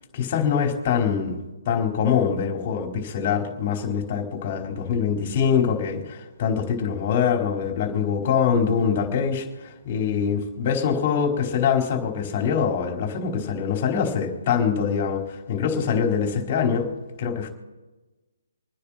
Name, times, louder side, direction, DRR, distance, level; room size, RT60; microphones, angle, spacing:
voice 1, 0.2-1.4 1.7-16.9 17.2-17.5, left 7 dB, 35° left, 2 dB, 4.4 m, -24 dB
27.0 x 10.0 x 4.4 m, 1.2 s
hypercardioid pair, 155°, 0 cm